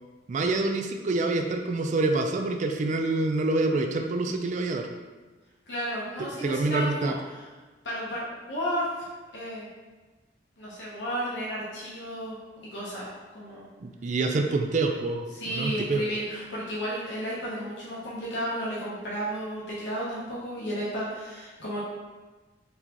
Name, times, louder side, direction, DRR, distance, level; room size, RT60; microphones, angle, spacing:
voice 1, 0.3-4.9 6.4-7.2 13.8-16.0, right 2 dB, 45° right, 4 dB, 0.3 m, -26 dB
voice 2, 5.7-7.4 7.8-9.1 9.3-9.7 10.6-12.4 12.7-13.7 15.3-21.8, equal, 90° left, -7 dB, 1.0 m, -33 dB
4.0 x 3.5 x 3.0 m, 1.3 s
head